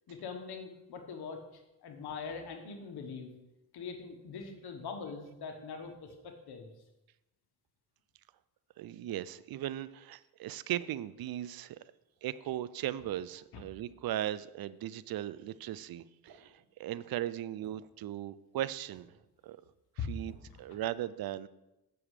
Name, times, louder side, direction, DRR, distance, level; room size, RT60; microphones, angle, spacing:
voice 1, 0.1-3.3 3.7-6.7 13.5-13.6 20.0-20.1 20.5-20.8, left 5 dB, 80° left, 5 dB, 1.5 m, -42 dB
voice 2, 8.8-11.8 12.2-19.1 19.4-19.6 20.1-20.3 20.6-21.5, right 12 dB, 70° right, 16 dB, 0.5 m, -37 dB
sound 1, 16.3-17.0 17.6-18.7 18.9-19.5 20.3-20.8, right 4 dB, 85° right, 1.4 m, -62 dB
7.3 x 7.0 x 4.9 m, 0.93 s
cardioid pair, 95°, 38 cm